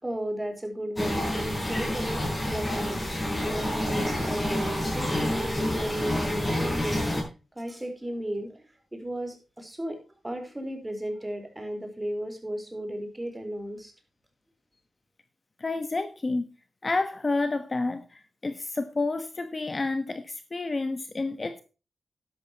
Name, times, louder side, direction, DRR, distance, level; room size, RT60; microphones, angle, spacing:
voice 1, 0.0-3.0 3.5-7.1 7.5-8.6 8.9-10.0 10.2-13.9, right 1 dB, 15° right, 4.4 m, -35 dB
sound 1, 1.0-7.2, left 1 dB, 20° left, 7.8 m, -28 dB
voice 2, 15.6-16.4 16.8-21.6, left 3 dB, 35° left, 1.2 m, -29 dB
13.0 x 11.5 x 3.0 m
wide cardioid pair, 100°, 0 cm